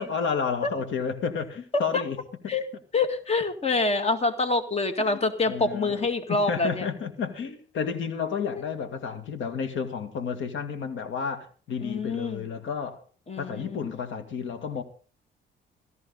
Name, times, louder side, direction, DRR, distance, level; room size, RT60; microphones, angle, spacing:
voice 1, 0.0-2.2 5.0-13.0 13.4-14.8, left 6 dB, 75° left, 2.2 m, -31 dB
voice 2, 2.9-6.9 11.8-12.5 13.3-13.8, left 3 dB, 30° left, 2.2 m, -26 dB
17.0 x 14.0 x 4.0 m
cardioid pair, 90°, 20 cm